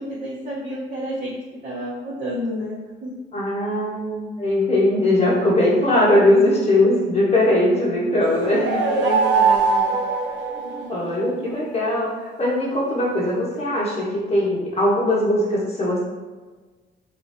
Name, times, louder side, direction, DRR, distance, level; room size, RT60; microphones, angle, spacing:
voice 1, 0.0-1.4 1.6-3.1 8.5-10.0, equal, 40° right, -8 dB, 0.9 m, -30 dB
voice 2, 3.3-8.8 10.9-16.0, left 1 dB, 30° left, -6 dB, 1.3 m, -20 dB
sound 1, 8.3-11.2, right 4 dB, 65° right, 0.5 m, -21 dB
3.0 x 2.6 x 2.6 m, 1.3 s
cardioid pair, 90°, 20 cm